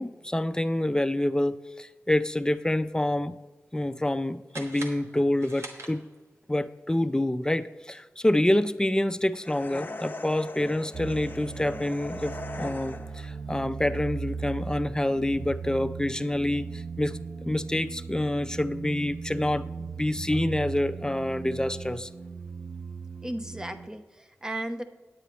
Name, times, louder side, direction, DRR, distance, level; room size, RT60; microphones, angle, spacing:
voice 1, 0.0-3.4 3.7-6.1 6.5-17.2 17.4-22.1, left 1 dB, 15° left, 13 dB, 0.4 m, -27 dB
sound 1, 4.5-6.4, right 2 dB, 65° right, 1.2 m, -43 dB
sound 2, 9.4-13.3, left 2 dB, 40° left, 0.8 m, -40 dB
sound 3, 10.9-23.9, right 5 dB, 50° right, 0.4 m, -38 dB
voice 2, 23.2-24.8, right 1 dB, 15° right, 7 dB, 0.8 m, -35 dB
9.1 x 8.9 x 4.2 m, 1.3 s
cardioid pair, 55°, 5 cm